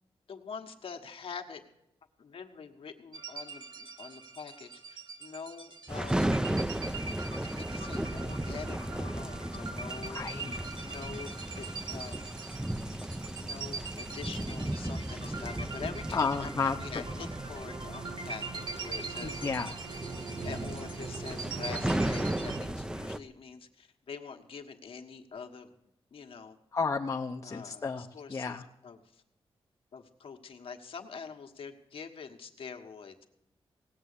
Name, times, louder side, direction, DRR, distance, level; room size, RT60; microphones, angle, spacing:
voice 1, 0.3-1.6 2.2-6.4 7.4-10.2 10.8-12.4 13.4-19.4 20.0-20.2 20.4-25.7 26.1-26.6 27.4-29.2 29.9-33.3, left 6 dB, 70° left, 5 dB, 1.5 m, -45 dB
sound 1, 3.1-22.6, right 4 dB, 50° right, 1.7 m, -42 dB
sound 2, 5.9-23.2, right 1 dB, 10° right, 0.6 m, -35 dB
voice 2, 10.0-10.6 16.1-16.8 19.2-19.7 26.7-28.6, left 5 dB, 35° left, 2 dB, 0.8 m, -32 dB
18.5 x 7.6 x 8.4 m, 0.82 s
wide cardioid pair, 115°, 10 cm